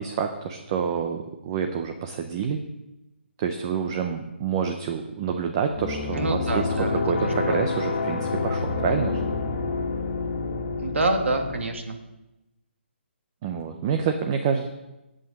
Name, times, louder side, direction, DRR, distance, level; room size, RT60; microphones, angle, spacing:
voice 1, 0.0-2.6 3.4-9.2 13.4-14.7, right 6 dB, 20° right, 5 dB, 0.5 m, -27 dB
sound 1, 5.7-11.6, left 4 dB, 40° left, 1.7 m, -28 dB
voice 2, 6.1-7.6 10.8-12.0, right 2 dB, 85° right, 4 dB, 2.0 m, -27 dB
7.9 x 7.5 x 8.5 m, 0.96 s
hypercardioid pair, 170°, 7 cm